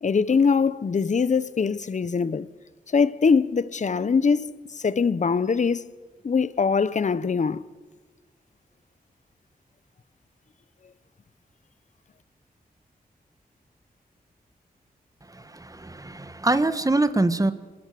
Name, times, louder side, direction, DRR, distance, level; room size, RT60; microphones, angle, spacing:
voice 1, 0.0-2.5 2.9-5.9 6.2-7.6, left 5 dB, 50° left, 0.9 m, -22 dB
voice 2, 15.3-17.5, right 2 dB, 20° right, 1.6 m, -24 dB
26.0 x 20.5 x 6.9 m
cardioid pair, 65°, 16 cm